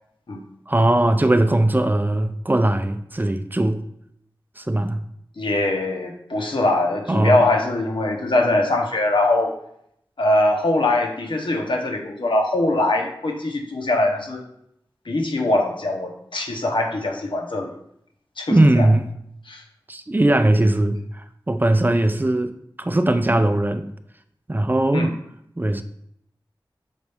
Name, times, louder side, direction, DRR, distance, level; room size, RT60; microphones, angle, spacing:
voice 1, 0.7-3.8 4.6-5.0 7.1-7.4 18.5-19.1 19.9-23.9 24.5-25.2 25.6-25.8, right 1 dB, 25° right, 0.5 m, -19 dB
voice 2, 5.4-9.6 10.2-14.4 15.1-17.7 18.4-18.9 19.5-19.6 24.9-25.1, left 2 dB, 80° left, 0.9 m, -22 dB
7.2 x 4.0 x 3.5 m
wide cardioid pair, 70°, 8 cm